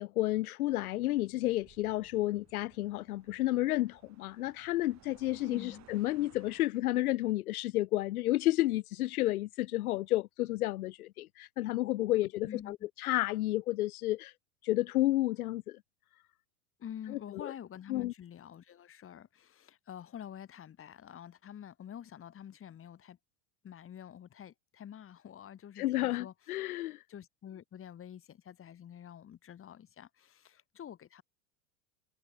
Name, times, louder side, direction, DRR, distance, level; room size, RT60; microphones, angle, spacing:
voice 1, 0.0-14.3 14.6-15.8 17.1-17.5 17.9-18.1 25.8-27.0, left 16 dB, 90° left, 0.9 m, -31 dB
sound 1, 0.6-6.6, right 13 dB, 40° right, 7.8 m, -62 dB
voice 2, 5.4-5.9 12.5-12.8 16.8-23.2 23.6-26.3 27.1-31.2, left 9 dB, 30° left, 5.5 m, -47 dB
supercardioid pair, 120°, 43 cm